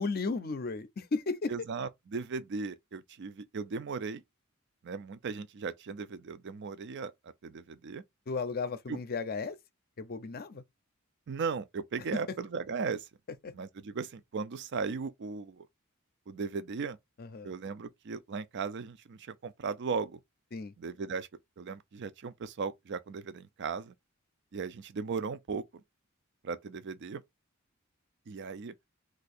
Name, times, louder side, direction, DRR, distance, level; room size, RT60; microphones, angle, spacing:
voice 1, 0.0-1.5 8.3-9.6 10.0-10.6 13.4-13.5 17.2-17.5 20.5-20.7, left 4 dB, 45° left, 0.5 m, -34 dB
voice 2, 1.5-4.2 4.8-7.1 7.4-8.0 8.9-9.0 11.3-13.1 13.5-15.7 16.3-17.0 17.4-20.2 20.8-21.3 21.6-23.9 24.5-25.6 26.4-27.2 28.3-28.7, right 5 dB, 55° right, 0.4 m, -37 dB
2.8 x 2.5 x 4.1 m
head